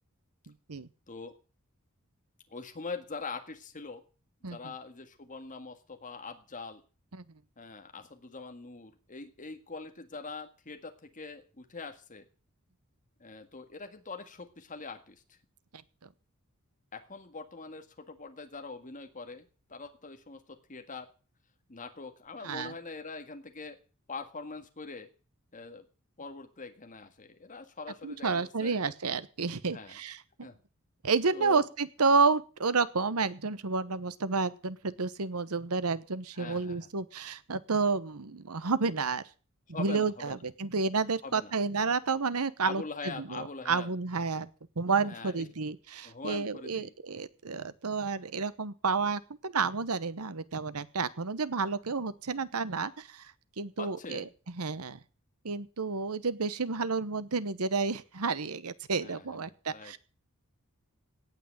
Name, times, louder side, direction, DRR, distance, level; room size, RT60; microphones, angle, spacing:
voice 1, 2.5-4.0 4.5-6.8 7.6-12.3 13.2-15.2 16.9-21.1 21.7-23.8 24.1-25.1 25.5-25.9 26.2-28.8 29.7-30.0 30.4-30.6 31.3-31.6 36.3-36.9 39.7-40.4 41.2-41.5 42.6-43.9 45.0-45.4 46.0-46.9 53.8-54.3 59.0-59.3 59.7-60.0, left 4 dB, 35° left, 6 dB, 1.8 m, -43 dB
voice 2, 28.0-30.5 31.0-39.2 39.8-44.5 44.8-54.2 54.6-55.0 55.4-60.0, right 4 dB, 80° right, 15 dB, 1.0 m, -30 dB
18.0 x 6.0 x 8.7 m, 0.37 s
head